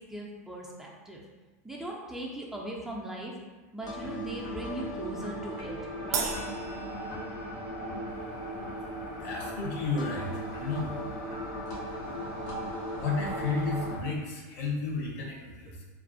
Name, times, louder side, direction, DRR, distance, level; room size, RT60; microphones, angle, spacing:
voice 1, 0.1-1.2 1.6-3.3 3.7-5.8 6.0-6.5, right 1 dB, 5° right, -4 dB, 0.3 m, -39 dB
sound 1, 3.8-14.0, equal, 85° left, 1.0 m, -37 dB
Crash cymbal, 6.1-7.8, right 5 dB, 80° right, 0.4 m, -35 dB
voice 2, 9.2-10.9 13.0-15.9, left 3 dB, 60° left, -1 dB, 0.7 m, -32 dB
2.4 x 2.2 x 2.5 m, 1.3 s
hypercardioid pair, 110°, 9 cm